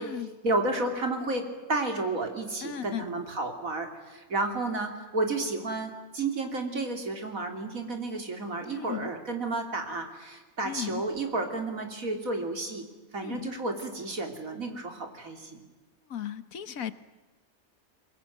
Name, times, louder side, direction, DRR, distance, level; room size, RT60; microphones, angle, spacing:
voice 1, 0.4-12.8 13.1-15.6, right 2 dB, 65° right, 5 dB, 3.6 m, -31 dB
voice 2, 2.6-3.3 8.7-9.1 10.6-11.0 13.2-13.5 16.1-16.9, left 9 dB, 70° left, 13 dB, 1.6 m, -36 dB
23.5 x 22.0 x 9.3 m, 1.2 s
omnidirectional pair, 1.5 m